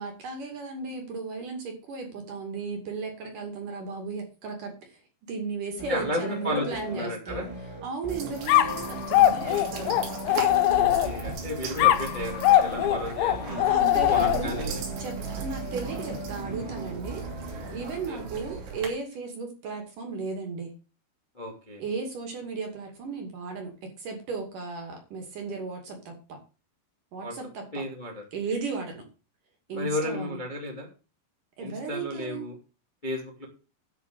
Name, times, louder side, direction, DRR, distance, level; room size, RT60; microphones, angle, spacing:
voice 1, 0.0-5.0 5.3-7.5 7.8-10.0 12.7-12.9 13.4-14.6 15.0-17.3 17.7-20.8 21.8-26.4 27.1-27.7 28.3-29.0 29.7-30.4 31.6-32.5, right 4 dB, 50° right, 3 dB, 3.5 m, -35 dB
sound 1, 5.8-17.8, right 2 dB, 10° right, 2.0 m, -39 dB
voice 2, 5.9-6.7 6.9-7.4 10.7-13.6 14.1-14.8 18.1-18.2 21.4-21.8 27.2-27.3 27.7-28.2 29.7-30.9 31.6-32.6 33.0-33.5, left 1 dB, 15° left, 0 dB, 1.8 m, -33 dB
sound 2, 8.1-18.9, right 5 dB, 75° right, 5.3 m, -38 dB
sound 3, 8.5-11.3 11.8-14.7, left 13 dB, 80° left, 3.1 m, -22 dB
11.5 x 5.8 x 6.8 m, 0.34 s
omnidirectional pair, 5.4 m